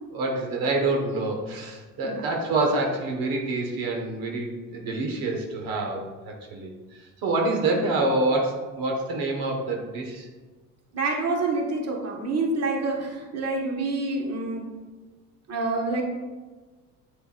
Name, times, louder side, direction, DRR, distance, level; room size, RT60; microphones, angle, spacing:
voice 1, 0.1-10.3, right 2 dB, 70° right, 1 dB, 1.6 m, -27 dB
voice 2, 10.9-14.7 15.5-16.0, right 3 dB, 45° right, 0 dB, 1.7 m, -27 dB
8.4 x 8.1 x 2.6 m, 1.3 s
supercardioid pair, 90°, 36 cm